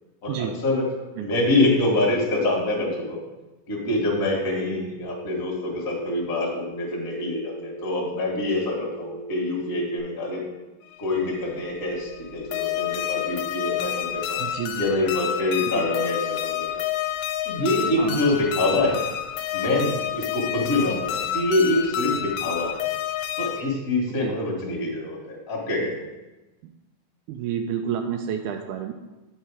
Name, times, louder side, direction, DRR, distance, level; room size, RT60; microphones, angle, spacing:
voice 1, 0.3-0.6 1.2-1.3 14.4-14.9 15.7-15.9 18.0-18.2 24.1-24.3 27.3-28.9, right 8 dB, 85° right, 4 dB, 1.8 m, -30 dB
voice 2, 1.2-3.2 3.7-10.4 11.0-14.4 14.8-16.7 17.4-19.0 19.5-22.7 23.4-25.9, left 2 dB, 40° left, -2 dB, 1.1 m, -25 dB
Telephone, 5.0-10.0, right 2 dB, 60° right, 1.8 m, -38 dB
sound 1, 10.9-23.6, left 11 dB, 80° left, 2.0 m, -29 dB
8.9 x 4.5 x 4.8 m, 1.1 s
omnidirectional pair, 4.1 m